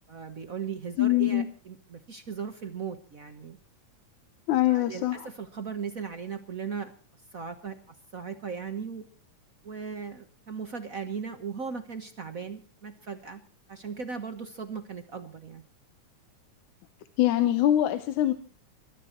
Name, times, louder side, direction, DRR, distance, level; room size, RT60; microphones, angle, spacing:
voice 1, 0.1-3.6 4.7-6.9 7.3-9.0 9.6-13.4 13.7-15.6, right 6 dB, 60° right, 7 dB, 0.9 m, -37 dB
voice 2, 1.0-1.5 4.5-5.3 17.2-18.3, left 13 dB, 80° left, 11 dB, 2.3 m, -23 dB
24.0 x 13.0 x 4.4 m, 0.38 s
omnidirectional pair, 3.4 m